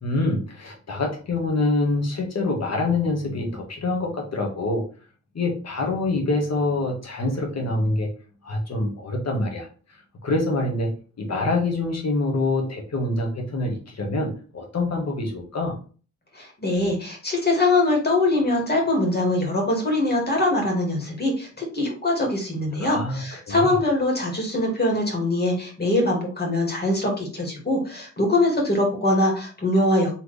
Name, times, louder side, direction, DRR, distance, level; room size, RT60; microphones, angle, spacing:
voice 1, 0.0-4.9 5.3-8.1 8.4-9.7 10.2-10.9 11.2-15.8 22.8-23.7, left 2 dB, 60° left, 1 dB, 1.6 m, -25 dB
voice 2, 16.3-30.2, left 2 dB, 35° left, 0 dB, 2.2 m, -23 dB
4.3 x 3.4 x 3.4 m, 0.38 s
cardioid pair, 90°, 30 cm